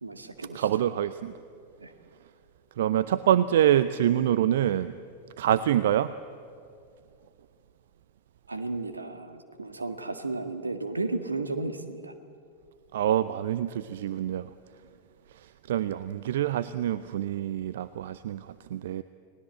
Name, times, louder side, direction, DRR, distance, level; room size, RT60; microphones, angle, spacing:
voice 1, 0.0-0.7 1.8-1.9 8.5-12.1, right 3 dB, 80° right, 8 dB, 1.7 m, -34 dB
voice 2, 0.5-1.3 2.8-4.9 5.4-6.1 12.9-14.5 15.3-19.0, right 11 dB, 60° right, 15 dB, 0.6 m, -26 dB
30.0 x 19.5 x 8.0 m, 2.4 s
figure-of-eight pair, 90°, 0 cm